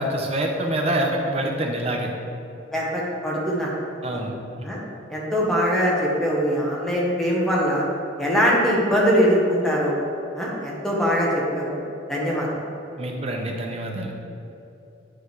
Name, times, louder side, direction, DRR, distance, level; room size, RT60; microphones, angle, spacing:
voice 1, 0.0-2.1 4.0-4.3 13.0-14.1, right 1 dB, 35° right, 1 dB, 0.8 m, -26 dB
voice 2, 2.7-3.7 4.6-4.8 5.1-7.8 8.2-9.9 10.3-11.8 12.1-12.6, equal, ahead, -5 dB, 1.1 m, -22 dB
9.5 x 4.9 x 3.3 m, 2.8 s
head